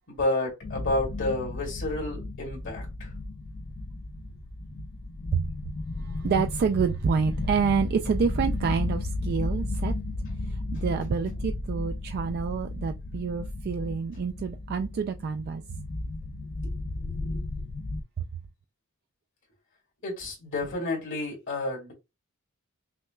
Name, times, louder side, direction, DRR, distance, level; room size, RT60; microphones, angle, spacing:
voice 1, 0.1-3.1 10.8-10.9 17.0-17.4 20.0-21.9, left 2 dB, 60° left, 2.0 m, -31 dB
sound 1, 0.6-18.0, left 2 dB, 40° left, 0.4 m, -34 dB
voice 2, 6.0-9.9 10.4-15.6 18.2-18.3, right 6 dB, 50° right, 0.3 m, -28 dB
5.8 x 2.2 x 2.3 m
head